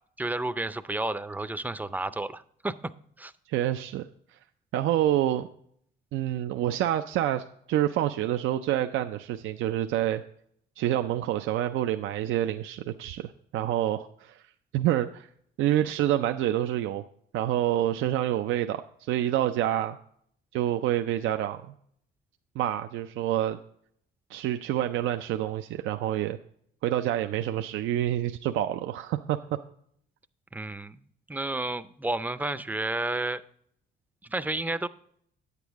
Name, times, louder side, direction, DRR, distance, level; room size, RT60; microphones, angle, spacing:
voice 1, 0.2-2.7 3.2-3.3 30.5-33.4 34.3-34.9, right 2 dB, 10° right, 13 dB, 0.4 m, -31 dB
voice 2, 3.5-4.1 4.7-5.5 6.1-10.2 10.8-14.4 14.7-15.3 15.6-17.0 17.3-18.8 19.1-20.0 20.5-21.7 22.6-23.6 24.3-26.4 26.8-29.4, right 12 dB, 85° right, 7 dB, 0.4 m, -27 dB
9.1 x 8.2 x 3.5 m, 0.66 s
cardioid pair, 90°, 20 cm